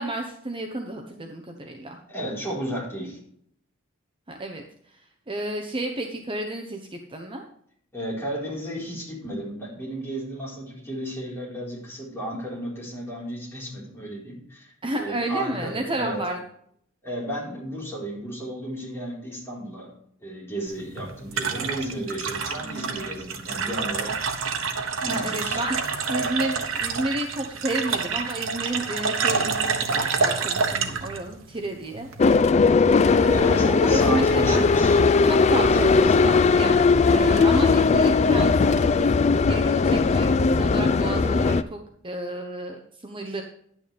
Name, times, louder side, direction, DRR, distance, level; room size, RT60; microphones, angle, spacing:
voice 1, 0.0-2.0 4.3-7.4 14.8-16.4 22.6-23.0 25.1-32.1 33.1-34.6 35.2-41.8 42.0-43.4, right 1 dB, 25° right, 3 dB, 0.9 m, -31 dB
voice 2, 2.1-3.2 7.9-16.2 17.0-19.9 20.2-24.2 25.0-25.7 33.3-35.1 35.7-36.4, right 1 dB, 15° left, -6 dB, 4.4 m, -33 dB
sound 1, 20.7-32.4, right 5 dB, 80° right, 1.1 m, -28 dB
sound 2, 32.2-41.6, left 4 dB, 35° left, 0.3 m, -19 dB
11.0 x 9.0 x 3.5 m, 0.67 s
head